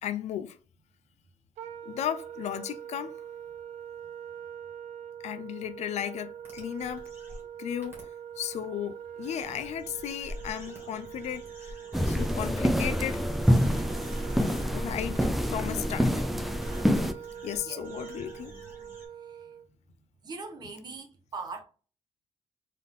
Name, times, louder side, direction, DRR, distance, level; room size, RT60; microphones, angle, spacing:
voice 1, 0.0-0.6 1.8-3.1 5.2-7.1 7.6-8.1 8.4-11.8 12.0-13.2 14.7-16.3 17.0-17.1 17.4-18.5, left 10 dB, 70° left, 0.4 m, -35 dB
Wind instrument woodwind instrument, 1.6-19.7, right 9 dB, 75° right, 0.5 m, -44 dB
sound 1, 6.4-7.4 7.8-8.0 8.4-8.5 9.2-14.6 15.1-15.2 15.8-15.9 16.5-16.8 17.2-19.1, equal, 20° right, 2.0 m, -48 dB
sound 2, 11.9-17.1, equal, ahead, 0.4 m, -26 dB
voice 2, 20.2-21.1 21.3-21.6, right 4 dB, 35° right, 1.0 m, -40 dB
3.9 x 3.7 x 3.6 m
wide cardioid pair, 170°, 12 cm